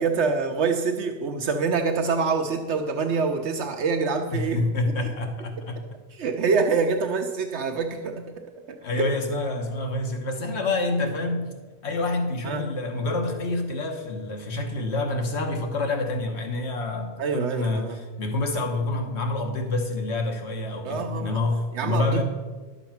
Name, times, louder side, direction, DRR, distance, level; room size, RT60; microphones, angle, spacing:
voice 1, 0.0-4.7 5.0-5.1 6.1-9.1 12.4-12.6 17.2-18.0 20.8-21.4 21.7-22.2, right 4 dB, 80° right, 4 dB, 1.1 m, -26 dB
voice 2, 4.3-5.8 8.8-11.5 11.8-22.2, left 2 dB, 75° left, 4 dB, 1.4 m, -27 dB
11.5 x 6.9 x 5.7 m, 1.3 s
omnidirectional pair, 1.1 m